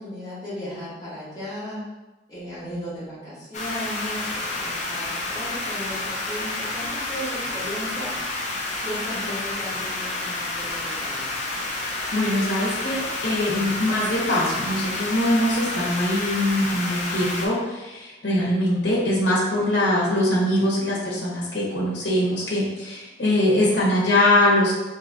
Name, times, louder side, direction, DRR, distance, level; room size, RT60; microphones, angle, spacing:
voice 1, 0.0-1.8 2.3-8.1 8.8-11.3, equal, 20° left, -9 dB, 1.2 m, -35 dB
sound 1, 3.5-17.5, left 2 dB, 40° left, 0.5 m, -29 dB
voice 2, 12.1-24.7, left 1 dB, 75° left, -4 dB, 0.8 m, -22 dB
3.9 x 2.8 x 2.5 m, 1.1 s
head